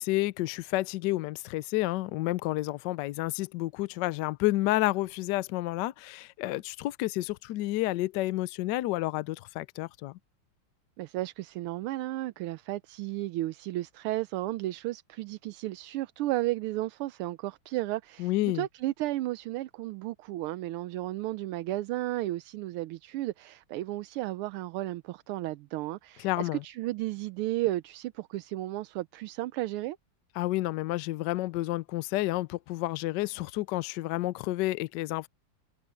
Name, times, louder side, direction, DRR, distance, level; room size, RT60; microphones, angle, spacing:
voice 1, 0.0-10.2 18.2-18.7 26.2-26.6 30.4-35.3, left 17 dB, 75° left, 1.0 m, -30 dB
voice 2, 11.0-30.0, right 16 dB, 85° right, 1.5 m, -33 dB
omnidirectional pair, 2.4 m